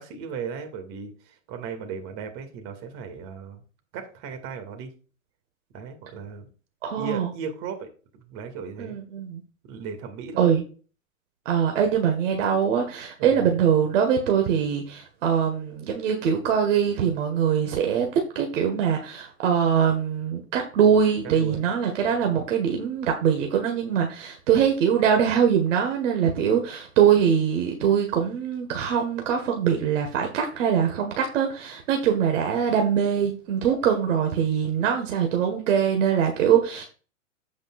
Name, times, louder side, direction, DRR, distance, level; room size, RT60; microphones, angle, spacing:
voice 1, 0.0-3.6 3.9-4.9 5.7-6.5 7.0-9.0 9.6-10.6 13.2-13.4 21.4-21.7, right 6 dB, 40° right, 5 dB, 2.3 m, -36 dB
voice 2, 6.8-7.3 8.8-9.4 10.4-10.6 11.5-18.1 18.4-36.8, right 8 dB, 60° right, 3 dB, 1.7 m, -23 dB
15.0 x 5.2 x 2.5 m, 0.37 s
hypercardioid pair, 120°, 42 cm